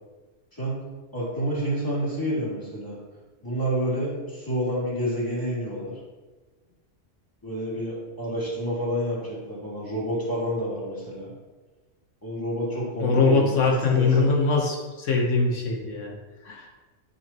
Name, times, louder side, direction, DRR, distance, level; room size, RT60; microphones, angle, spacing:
voice 1, 1.1-3.0 3.4-6.0 7.4-11.3 12.2-14.3, equal, 15° left, -7 dB, 2.8 m, -29 dB
voice 2, 13.0-16.1 16.4-16.7, left 4 dB, 85° left, 0 dB, 1.4 m, -22 dB
11.0 x 6.0 x 3.0 m, 1.3 s
omnidirectional pair, 1.3 m